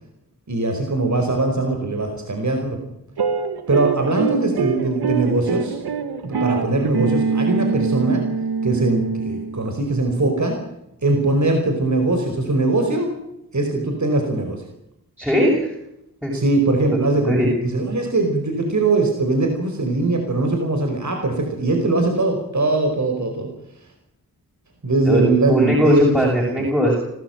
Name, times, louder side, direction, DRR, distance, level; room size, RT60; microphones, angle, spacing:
voice 1, 0.5-2.8 3.7-5.8 6.2-8.2 8.6-10.6 11.0-13.1 13.5-14.6 16.3-23.5 24.8-26.1 26.6-26.7, right 2 dB, 50° right, 4 dB, 5.0 m, -21 dB
sound 1, 3.2-9.7, right 5 dB, 85° right, 1.7 m, -24 dB
voice 2, 15.2-15.7 16.2-16.3 16.9-17.5 25.0-27.0, equal, 5° right, -3 dB, 7.7 m, -19 dB
28.0 x 14.0 x 9.0 m, 0.84 s
cardioid pair, 45°, 37 cm